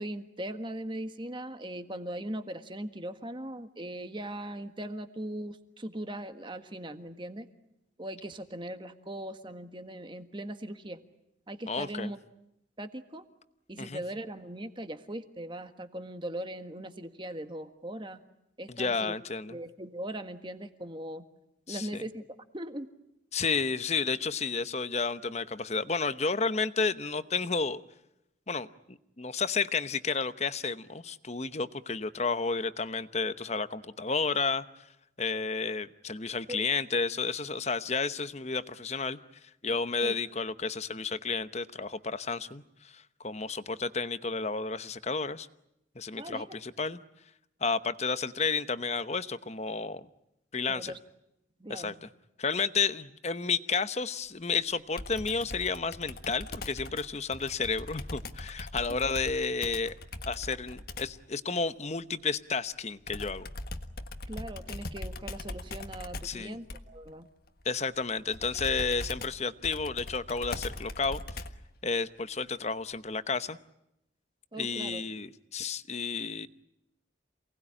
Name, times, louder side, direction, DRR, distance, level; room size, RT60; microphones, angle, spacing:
voice 1, 0.0-7.5 8.0-11.0 11.5-12.2 12.8-13.2 13.7-18.2 18.6-19.1 19.5-21.2 21.7-22.2 22.5-22.9 36.5-36.6 40.0-40.2 46.2-46.6 50.7-51.0 51.6-51.9 64.3-67.3 74.5-75.0, right 1 dB, 25° right, 8 dB, 1.6 m, -39 dB
voice 2, 11.7-12.1 13.8-14.0 18.7-19.5 21.7-22.0 23.3-27.8 28.5-34.6 35.2-39.2 39.6-45.5 45.9-47.0 47.6-50.1 50.5-50.9 51.7-52.1 52.4-60.0 60.3-63.5 66.2-66.6 67.6-71.2 71.8-73.6 74.6-76.5, left 4 dB, 35° left, 12 dB, 0.9 m, -31 dB
Computer keyboard, 55.0-61.2 63.1-71.7, left 2 dB, 55° left, 1.5 m, -41 dB
28.0 x 19.0 x 9.9 m, 0.84 s
head